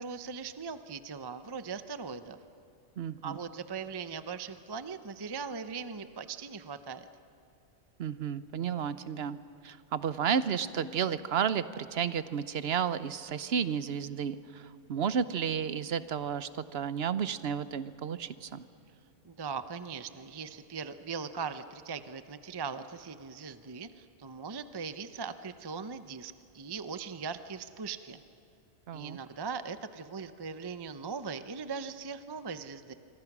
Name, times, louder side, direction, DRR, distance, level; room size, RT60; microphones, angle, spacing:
voice 1, 0.0-2.4 3.2-7.1 19.2-28.2 28.9-32.9, right 5 dB, 25° right, 11 dB, 0.6 m, -40 dB
voice 2, 3.0-3.4 8.0-9.4 9.6-18.7 28.9-29.2, right 7 dB, 60° right, 14 dB, 1.0 m, -32 dB
26.0 x 25.0 x 6.1 m, 2.6 s
omnidirectional pair, 1.3 m